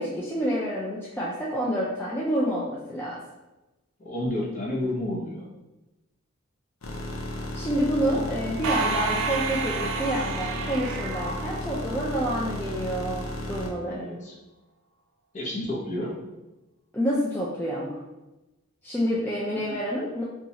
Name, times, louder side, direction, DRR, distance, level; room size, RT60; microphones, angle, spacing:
voice 1, 0.0-3.2 7.5-14.1 16.9-18.0 18.8-20.2, equal, 10° left, -6 dB, 0.3 m, -28 dB
voice 2, 4.0-5.5 8.0-8.2 13.8-14.3 15.3-16.1 19.5-19.6, left 1 dB, 35° left, -3 dB, 0.8 m, -31 dB
sound 1, 6.8-13.7, left 1 dB, 85° left, 0.6 m, -34 dB
sound 2, 8.6-12.3, right 4 dB, 80° right, 0.4 m, -30 dB
2.9 x 2.3 x 4.0 m, 1.0 s
head